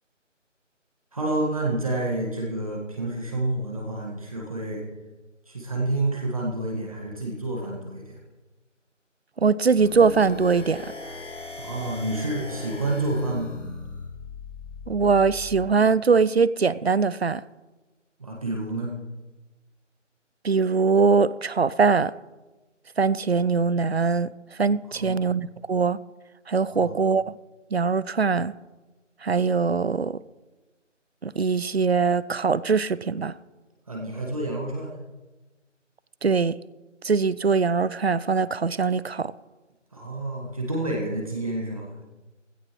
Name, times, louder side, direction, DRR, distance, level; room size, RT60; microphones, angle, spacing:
voice 1, 1.1-4.8 5.5-8.1 11.6-13.5 18.2-18.9 24.9-25.2 26.7-27.0 33.9-34.9 39.9-42.0, right 2 dB, 30° right, 1.6 m, -29 dB
voice 2, 9.4-10.9 14.9-17.4 20.4-22.1 23.0-24.3 24.6-26.0 26.5-27.3 27.7-28.5 29.2-30.2 31.2-33.3 36.2-36.6 37.0-39.3, right 5 dB, 55° right, 0.5 m, -22 dB
sound 1, 9.7-15.7, left 3 dB, 75° left, 3.2 m, -39 dB
16.0 x 15.5 x 3.1 m
figure-of-eight pair, 170°, 38 cm